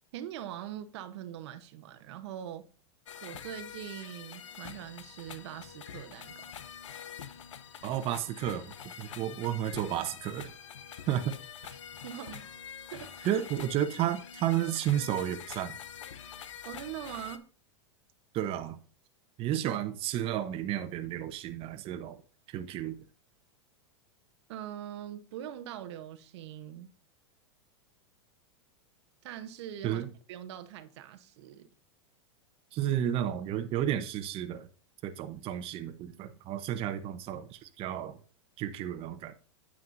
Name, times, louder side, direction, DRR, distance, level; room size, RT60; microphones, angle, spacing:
voice 1, 0.1-2.6 3.2-6.5 11.6-12.5 12.9-13.4 16.6-17.5 24.5-26.9 29.2-31.7, right 11 dB, 65° right, 1.0 m, -43 dB
sound 1, 3.1-17.4, left 8 dB, 85° left, 0.9 m, -46 dB
voice 2, 7.8-8.7 9.0-10.5 11.1-11.3 13.3-15.7 18.3-18.8 19.4-22.2 22.5-23.0 29.8-30.1 32.7-34.7 35.0-38.2 38.6-39.3, right 11 dB, 35° right, 0.9 m, -32 dB
9.4 x 7.5 x 2.6 m
hypercardioid pair, 120°, 16 cm